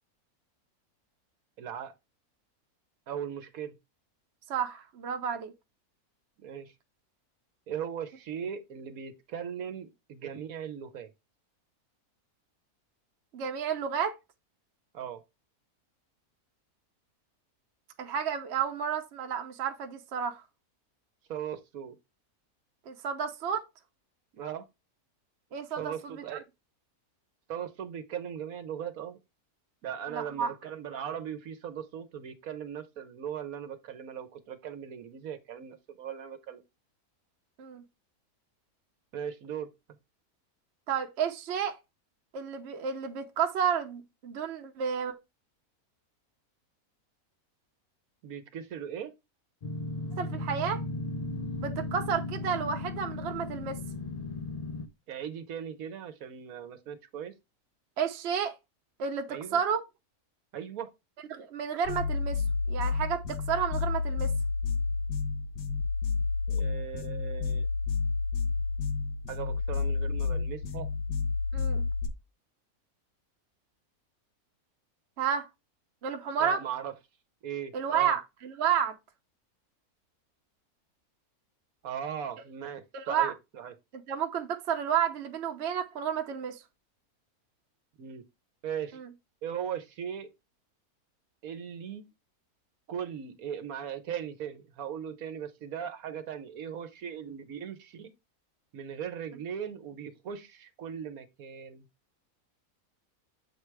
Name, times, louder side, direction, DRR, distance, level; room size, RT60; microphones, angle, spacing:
voice 1, 1.6-1.9 3.1-3.8 6.4-6.7 7.7-11.1 14.9-15.2 21.3-22.0 24.3-24.6 25.8-26.4 27.5-29.2 29.8-36.6 39.1-39.7 48.2-49.1 55.1-57.3 59.3-59.6 60.5-60.9 66.5-67.7 69.3-70.9 76.4-76.9 77.4-78.2 81.8-83.7 88.0-88.2 88.6-89.0 89.4-90.3 91.4-92.1 92.9-98.1 98.7-101.9, right 8 dB, 70° right, 1.2 m, -38 dB
voice 2, 4.5-5.5 13.3-14.2 18.0-20.4 22.9-23.6 25.5-26.4 30.1-30.5 37.6-37.8 40.9-41.8 42.3-45.1 50.2-50.8 51.6-53.8 58.0-58.5 59.0-59.8 61.3-64.3 71.5-71.8 75.2-75.5 76.0-76.6 77.7-78.9 82.9-83.3 84.1-86.6 88.9-89.1, right 7 dB, 50° right, 1.0 m, -31 dB
sound 1, 49.6-54.9, left 2 dB, 55° left, 0.4 m, -36 dB
sound 2, 61.8-72.1, left 4 dB, 90° left, 1.3 m, -30 dB
7.3 x 3.3 x 4.6 m
omnidirectional pair, 1.6 m